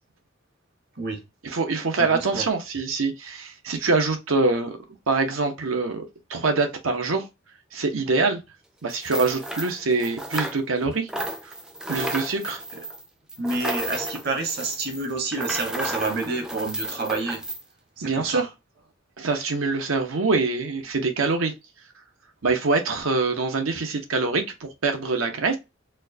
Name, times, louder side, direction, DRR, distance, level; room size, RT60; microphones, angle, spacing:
voice 1, 1.4-4.8 5.1-6.0 6.3-7.3 7.7-8.4 8.8-11.1 11.9-12.6 18.0-18.5 19.2-21.5 22.4-25.6, right 3 dB, 85° right, 0.9 m, -24 dB
voice 2, 2.0-2.4 12.7-12.8 13.4-17.4 18.0-18.5, right 3 dB, 50° right, 1.0 m, -29 dB
sound 1, 8.9-10.8 11.1-17.6, right 1 dB, 5° right, 0.3 m, -32 dB
4.3 x 2.2 x 2.7 m
head